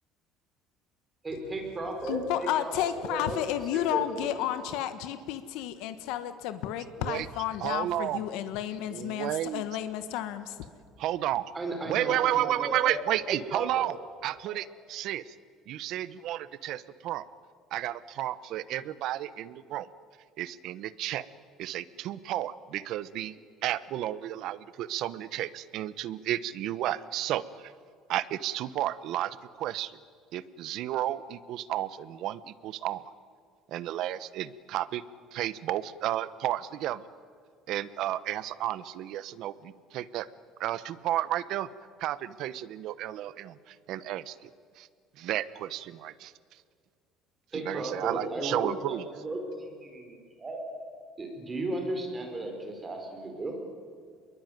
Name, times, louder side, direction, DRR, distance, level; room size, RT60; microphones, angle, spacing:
voice 1, 1.2-3.4 3.7-4.4 11.5-13.0 13.3-13.8 14.4-14.5 47.5-50.6 51.2-53.5, right 2 dB, 15° right, 3 dB, 4.7 m, -35 dB
voice 2, 2.1-10.7, left 11 dB, 75° left, 10 dB, 1.5 m, -32 dB
voice 3, 7.6-8.2 8.9-9.6 11.0-11.5 11.9-14.0 14.2-15.3 15.7-17.2 17.7-19.9 20.4-21.3 21.6-27.7 28.1-29.9 30.3-33.0 33.7-35.0 35.3-37.1 37.7-40.3 40.6-41.7 42.0-44.5 44.8-44.9 45.2-46.3 47.5-49.0, right 13 dB, 55° right, 16 dB, 1.0 m, -32 dB
28.0 x 22.0 x 9.4 m, 2.1 s
cardioid pair, 170°, 0 cm